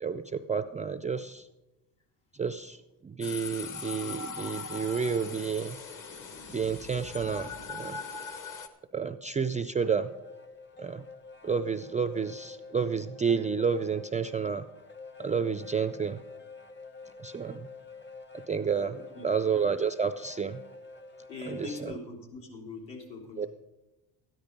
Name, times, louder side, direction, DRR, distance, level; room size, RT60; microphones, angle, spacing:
voice 1, 0.0-1.5 2.4-5.8 6.5-8.0 8.9-10.1 10.8-11.0 11.4-14.6 15.2-16.2 17.2-17.7 18.3-20.6 21.4-22.0 23.4-23.5, right 6 dB, 20° right, 10 dB, 0.3 m, -30 dB
sound 1, 3.2-8.7, left 5 dB, 45° left, 1.2 m, -40 dB
sound 2, 9.4-22.0, left 4 dB, 25° left, 0.7 m, -48 dB
voice 2, 18.9-19.3 21.3-23.5, left 3 dB, 75° left, 0 dB, 3.4 m, -42 dB
13.0 x 10.5 x 5.2 m, 1.0 s
cardioid pair, 100°, 43 cm